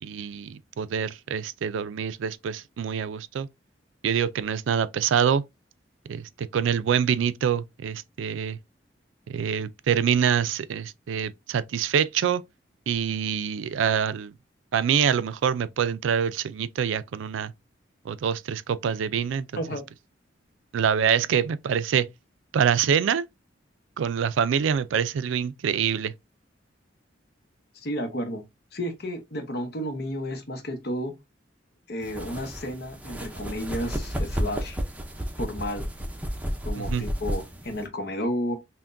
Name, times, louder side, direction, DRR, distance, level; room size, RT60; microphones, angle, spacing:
voice 1, 0.0-3.5 4.0-5.4 6.1-8.6 9.3-12.4 12.9-14.3 14.7-17.5 18.1-19.5 20.7-22.1 22.5-23.2 24.0-26.1 36.8-37.1, right 7 dB, 85° right, 0.3 m, -25 dB
voice 2, 27.7-28.4 28.7-31.1 31.9-34.8 35.4-35.9 36.6-38.6, equal, 55° left, 0.8 m, -32 dB
sound 1, 32.0-37.8, equal, 10° right, 0.5 m, -32 dB
5.7 x 2.2 x 2.5 m
head